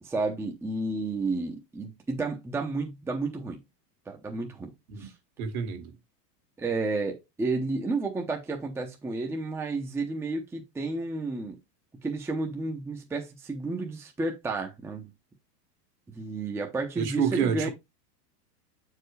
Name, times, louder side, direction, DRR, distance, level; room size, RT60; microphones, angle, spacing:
voice 1, 0.0-3.6 4.1-4.7 5.0-5.1 6.6-11.6 12.0-15.1 16.1-17.7, right 3 dB, 5° right, 0.7 m, -31 dB
voice 2, 5.4-5.9 17.0-17.7, right 7 dB, 65° right, 1.9 m, -28 dB
7.2 x 4.7 x 3.2 m
supercardioid pair, 145°, 47 cm